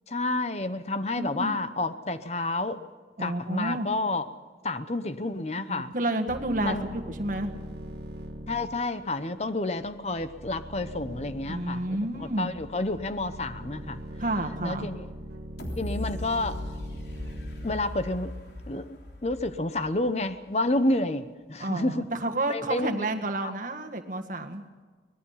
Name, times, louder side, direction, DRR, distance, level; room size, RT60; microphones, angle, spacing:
voice 1, 0.1-2.8 3.2-4.3 4.6-5.9 6.6-6.9 8.5-14.0 14.6-15.1 15.8-16.6 17.6-18.4 18.7-22.1 22.5-23.1 23.4-23.5, left 2 dB, 40° left, 11 dB, 0.8 m, -30 dB
voice 2, 1.2-1.5 3.2-3.9 5.7-6.8 7.2-7.5 11.5-12.5 14.2-14.9 21.6-24.6, right 1 dB, 45° right, 4 dB, 1.7 m, -30 dB
sound 1, 6.3-18.8, right 1 dB, 70° right, 1.8 m, -42 dB
sound 2, 15.6-20.5 20.9-21.0, left 1 dB, 75° left, 3.4 m, -38 dB
24.5 x 19.0 x 5.8 m, 1.4 s
head